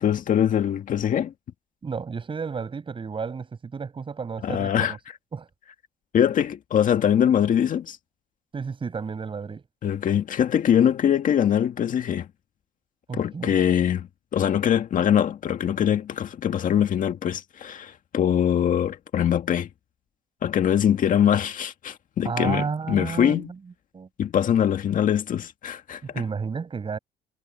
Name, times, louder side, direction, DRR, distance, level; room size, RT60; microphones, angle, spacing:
voice 1, 0.0-1.3 4.4-4.9 6.1-8.0 9.8-12.3 13.1-19.7 20.4-23.5 24.2-26.0, left 9 dB, 50° left, 2.0 m, -23 dB
voice 2, 1.8-5.0 5.3-5.5 8.5-9.6 13.1-13.5 22.2-23.6 23.9-24.1 26.1-27.0, right 5 dB, 30° right, 7.4 m, -31 dB
cardioid pair, 110°, 17 cm